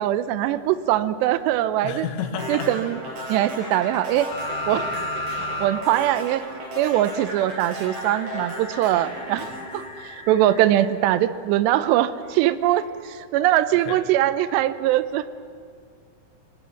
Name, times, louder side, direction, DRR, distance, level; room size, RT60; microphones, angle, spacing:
voice 1, 0.0-2.1 2.5-3.0 3.3-4.3 4.7-4.9 5.6-6.4 6.8-15.3, right 13 dB, 80° right, 14 dB, 2.8 m, -22 dB
voice 2, 1.8-2.7 3.4-3.7 4.9-5.1 9.4-9.7 13.8-14.0, left 7 dB, 85° left, 6 dB, 3.9 m, -32 dB
sound 1, 2.4-10.7, right 1 dB, 50° right, 6.4 m, -35 dB
sound 2, 4.3-5.7 6.0-6.1 7.7-10.8 12.5-12.6, left 2 dB, 60° left, 4.6 m, -34 dB
25.0 x 18.5 x 7.1 m, 2.3 s
omnidirectional pair, 5.0 m